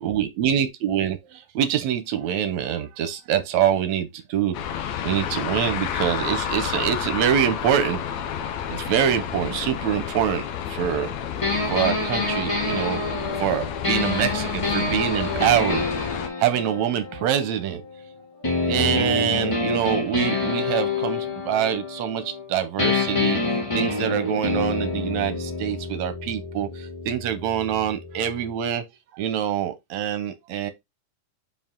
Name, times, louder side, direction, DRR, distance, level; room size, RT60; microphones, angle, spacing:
voice 1, 0.0-8.0 8.7-11.1 11.7-13.0 13.4-15.8 16.4-17.8 18.7-23.4 23.7-28.8 29.2-30.7, right 10 dB, 70° right, 2.0 m, -25 dB
sound 1, 4.5-16.3, left 9 dB, 70° left, 1.8 m, -30 dB
sound 2, 11.4-18.0 18.4-22.5 22.8-28.5, left 3 dB, 40° left, 0.4 m, -27 dB
5.4 x 4.7 x 3.7 m
omnidirectional pair, 3.6 m